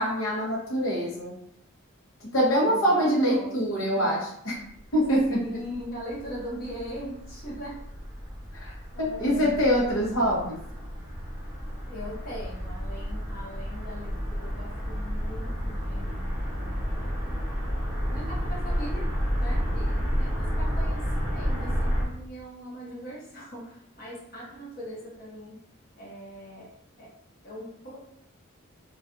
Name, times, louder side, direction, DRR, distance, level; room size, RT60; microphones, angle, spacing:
voice 1, 0.0-1.3 2.3-4.5 4.9-5.4 8.5-10.6, equal, 75° left, -4 dB, 0.8 m, -24 dB
voice 2, 2.6-4.2 5.3-7.8 8.9-9.6 11.9-17.4 18.1-19.1 19.4-25.6 26.0-27.1 27.4-28.0, equal, 45° left, -5 dB, 0.8 m, -41 dB
sound 1, 4.7-22.1, equal, 5° right, 0.7 m, -31 dB
2.4 x 2.3 x 2.5 m, 0.70 s
head